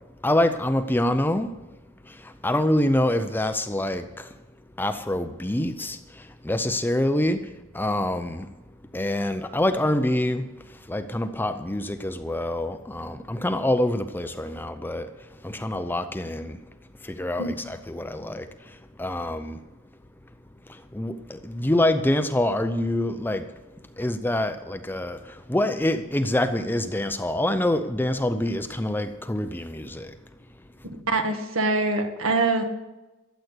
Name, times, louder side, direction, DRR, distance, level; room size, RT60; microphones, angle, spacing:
voice 1, 0.2-1.5 2.0-4.3 4.8-8.5 8.9-15.1 15.4-16.6 17.0-19.6 20.7-23.5 24.0-30.2, left 1 dB, 10° left, 0.5 m, -26 dB
voice 2, 31.1-32.6, right 3 dB, 75° right, 1.7 m, -24 dB
13.0 x 8.2 x 8.2 m
head